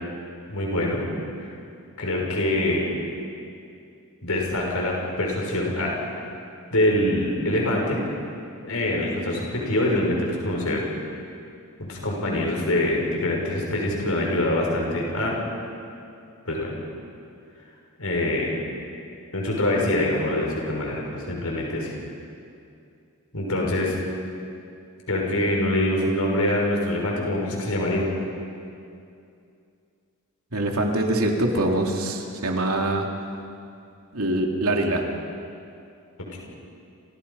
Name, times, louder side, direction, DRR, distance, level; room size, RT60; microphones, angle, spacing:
voice 1, 0.5-1.0 1.4-1.5 2.0-2.8 4.2-6.2 6.7-8.0 8.6-10.8 11.8-15.4 16.4-16.7 18.0-18.5 19.3-21.9 23.3-24.0 25.1-28.0 36.3-36.4, left 1 dB, 70° left, -1 dB, 6.2 m, -24 dB
voice 2, 30.5-33.1 34.1-35.0, right 1 dB, 70° right, 1 dB, 3.1 m, -24 dB
28.5 x 28.5 x 5.7 m, 2.5 s
head